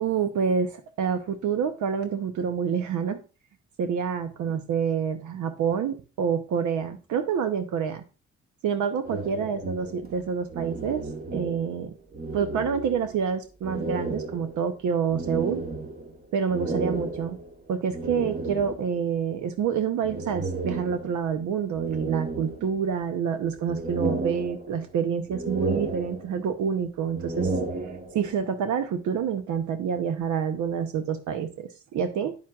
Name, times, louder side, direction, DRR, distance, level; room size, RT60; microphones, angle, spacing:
voice 1, 0.0-3.2 3.8-8.0 8.6-11.0 11.3-11.9 12.3-15.6 16.3-17.4 17.7-27.5 28.1-32.3, right 7 dB, 75° right, 9 dB, 0.8 m, -27 dB
sound 1, 9.0-11.9 12.1-13.2 13.6-19.1 20.0-21.3 21.7-23.1 23.5-25.0 25.3-26.6 27.0-28.4, right 3 dB, 30° right, 1.3 m, -33 dB
9.0 x 7.4 x 2.4 m, 0.33 s
cardioid pair, 90°, 30 cm